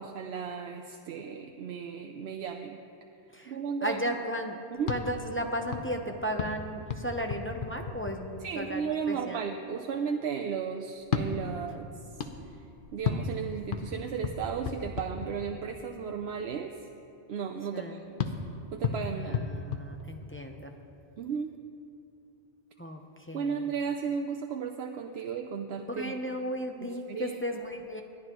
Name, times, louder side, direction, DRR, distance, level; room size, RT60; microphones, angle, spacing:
voice 1, 0.0-2.8 3.5-4.2 4.7-4.9 8.4-12.6 12.9-16.8 17.3-18.3 18.7-19.5 21.2-21.6 23.3-26.2 26.8-27.4, right 6 dB, 70° right, 4 dB, 0.8 m, -35 dB
voice 2, 3.8-4.6 4.9-9.4 17.7-18.0 19.3-20.7 22.8-23.0 23.3-23.7 26.0-28.0, equal, 15° left, 2 dB, 0.6 m, -35 dB
sound 1, 4.8-8.6 11.0-15.9 18.2-20.6, left 5 dB, 55° left, 0.9 m, -35 dB
21.0 x 12.0 x 3.0 m, 2.6 s
omnidirectional pair, 1.2 m